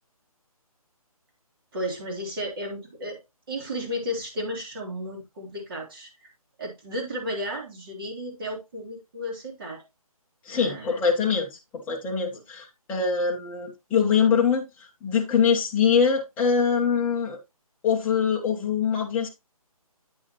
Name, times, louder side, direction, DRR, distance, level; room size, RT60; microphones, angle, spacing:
voice 1, 1.7-3.2 3.5-6.3 6.6-9.8 10.5-10.9 12.3-12.4, equal, 35° right, 0 dB, 2.9 m, -33 dB
voice 2, 10.5-14.7 15.0-17.4 17.8-19.3, left 6 dB, 10° left, -1 dB, 1.0 m, -23 dB
8.9 x 6.2 x 3.0 m, 0.22 s
figure-of-eight pair, 150°, 19 cm